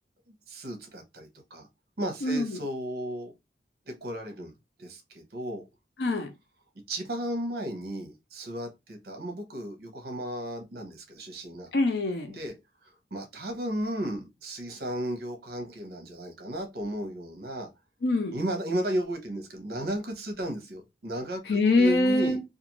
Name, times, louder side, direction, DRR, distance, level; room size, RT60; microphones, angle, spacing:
voice 1, 0.5-1.7 2.0-3.3 3.9-4.5 4.8-5.7 6.9-11.7 12.3-12.5 12.8-17.7 18.3-22.4, right 1 dB, 55° right, 0.7 m, -34 dB
voice 2, 2.2-2.6 6.0-6.3 11.7-12.4 18.0-18.3 21.5-22.4, left 2 dB, 65° left, 0.5 m, -24 dB
2.4 x 2.4 x 2.9 m
head